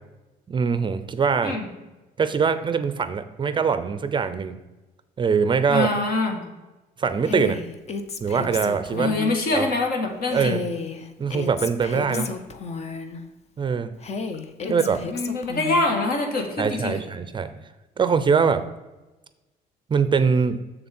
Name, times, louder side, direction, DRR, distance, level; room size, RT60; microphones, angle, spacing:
voice 1, 0.5-1.6 2.2-4.6 5.2-5.9 7.0-7.6 8.2-9.1 9.5-9.7 10.3-10.6 11.2-12.3 13.6-13.9 14.7-15.0 16.6-17.5 18.0-18.6 19.9-20.6, right 6 dB, 30° right, 11 dB, 0.5 m, -22 dB
voice 2, 5.7-6.4 9.0-10.6 12.1-12.3 14.6-17.0, left 2 dB, 65° left, 3 dB, 1.9 m, -25 dB
Female speech woman speaking, 7.2-9.4 10.3-13.2 14.0-15.9, left 4 dB, 40° left, 0.8 m, -32 dB
6.9 x 6.9 x 4.3 m, 1.1 s
cardioid pair, 110°, 17 cm